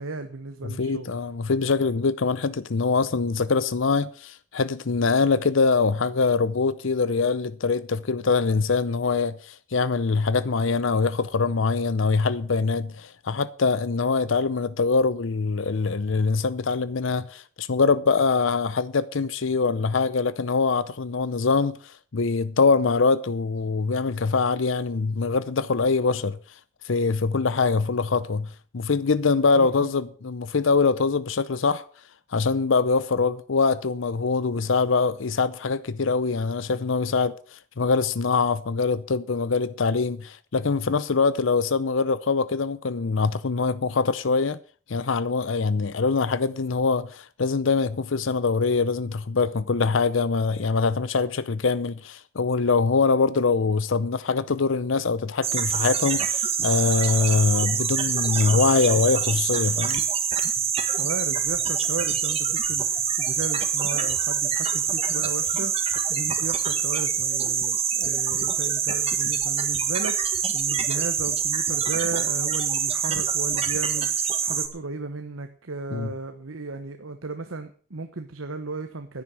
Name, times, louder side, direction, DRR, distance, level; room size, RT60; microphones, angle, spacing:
voice 1, 0.0-1.1 29.5-29.9 60.9-79.2, right 3 dB, 90° right, 1.1 m, -35 dB
voice 2, 0.6-26.4 26.8-31.8 32.3-44.6 44.9-60.0 75.9-76.1, left 4 dB, 75° left, 0.6 m, -23 dB
sound 1, 55.4-74.7, right 7 dB, 30° right, 1.5 m, -25 dB
10.5 x 9.7 x 7.3 m
head